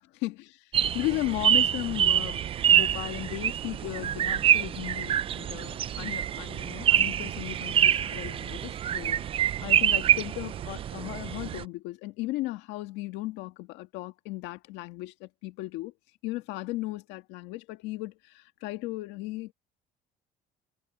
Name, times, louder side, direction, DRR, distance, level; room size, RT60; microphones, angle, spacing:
voice 1, 0.2-0.6 0.9-9.3 9.6-15.9 16.2-19.5, left 18 dB, 85° left, 1.8 m, -36 dB
sound 1, 0.7-11.6, right 10 dB, 30° right, 0.4 m, -26 dB
cardioid pair, 140°, 18 cm